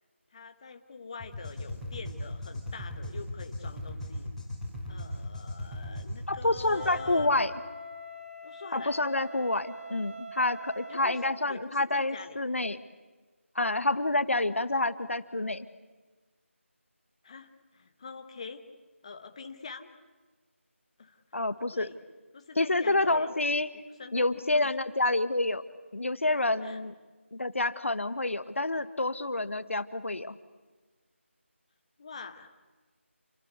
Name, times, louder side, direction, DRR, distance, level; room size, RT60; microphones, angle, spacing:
voice 1, 0.3-4.3 4.9-7.3 8.4-9.0 10.9-11.2 11.5-12.4 13.7-13.8 17.2-18.6 19.0-19.9 21.0-21.2 21.7-22.0 22.3-23.3 24.0-24.7 26.6-26.8 32.0-32.5, left 4 dB, 25° left, 7 dB, 1.3 m, -44 dB
sound 1, 1.2-7.3, left 1 dB, ahead, 6.4 m, -38 dB
voice 2, 6.3-7.5 8.7-12.8 13.5-15.6 21.3-21.9 22.5-23.7 24.1-25.6 25.9-26.9 27.3-30.3, left 2 dB, 70° left, 13 dB, 1.5 m, -28 dB
Wind instrument woodwind instrument, 6.7-11.4, equal, 90° right, 7.0 m, -44 dB
28.5 x 23.0 x 8.2 m, 1.3 s
figure-of-eight pair, 165°, 7 cm